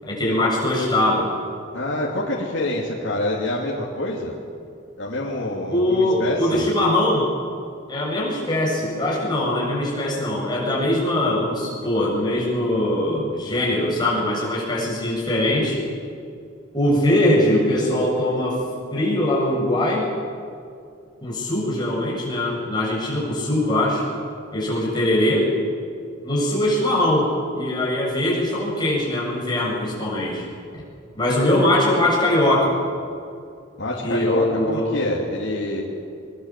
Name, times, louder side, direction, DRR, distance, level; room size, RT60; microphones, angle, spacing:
voice 1, 0.0-1.3 5.7-7.3 7.9-15.8 16.7-18.6 18.9-20.1 21.2-24.1 24.5-25.5 26.2-30.4 31.2-32.7 34.0-35.0, left 1 dB, 20° left, -4 dB, 7.8 m, -21 dB
voice 2, 1.7-4.4 5.0-6.7 33.8-35.8, left 1 dB, 65° left, -4 dB, 3.1 m, -26 dB
24.0 x 23.0 x 7.7 m, 2.3 s
head